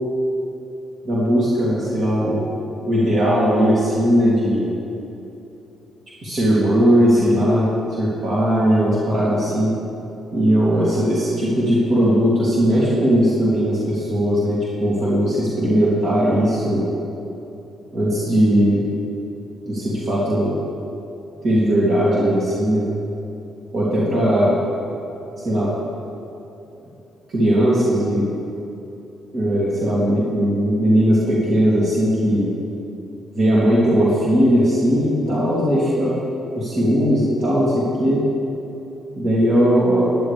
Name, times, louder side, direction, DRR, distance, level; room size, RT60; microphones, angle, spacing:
voice 1, 1.0-2.5 2.8-4.8 6.2-7.7 8.0-9.7 10.3-16.8 17.9-18.9 19.6-20.6 21.4-22.9 23.7-24.6 25.4-25.7 27.3-28.3 29.3-32.5 33.3-36.1 36.5-38.2 39.2-40.1, equal, 55° right, -8 dB, 2.9 m, -18 dB
13.0 x 11.0 x 3.5 m, 2.8 s
cardioid pair, 80°, 0 cm